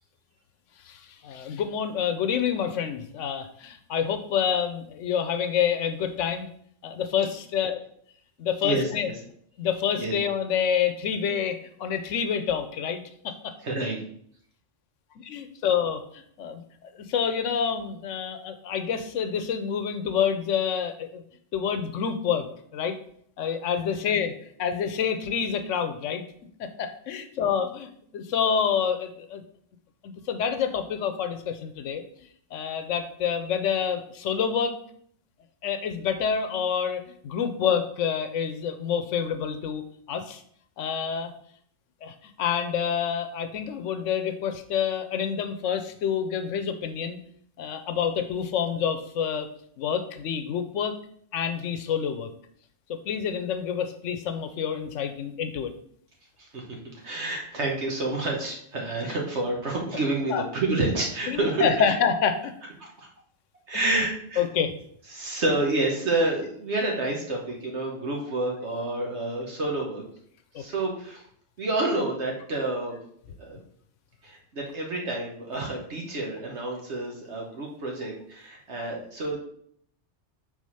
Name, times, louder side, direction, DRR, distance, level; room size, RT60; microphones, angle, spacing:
voice 1, 0.8-6.5 6.8-7.8 8.4-9.1 9.6-13.5 15.3-21.2 21.5-23.0 23.4-24.3 24.6-26.2 26.6-29.4 30.0-32.0 32.5-34.8 35.6-40.4 40.8-41.3 42.0-47.2 47.6-49.5 49.8-51.0 51.3-52.3 52.9-55.7 60.3-60.4 61.3-62.5 63.7-64.0 64.4-64.7 70.5-70.6, left 7 dB, 85° left, 8 dB, 1.0 m, -28 dB
voice 2, 8.6-9.1 10.0-10.1 13.6-14.0 56.4-56.6 57.0-61.7 63.0-63.1 63.7-64.4 65.1-70.0 70.6-71.2 71.6-72.9 73.4-73.6 74.2-79.4, right 2 dB, 70° right, 0 dB, 1.4 m, -28 dB
4.9 x 4.0 x 5.5 m, 0.64 s
omnidirectional pair, 1.2 m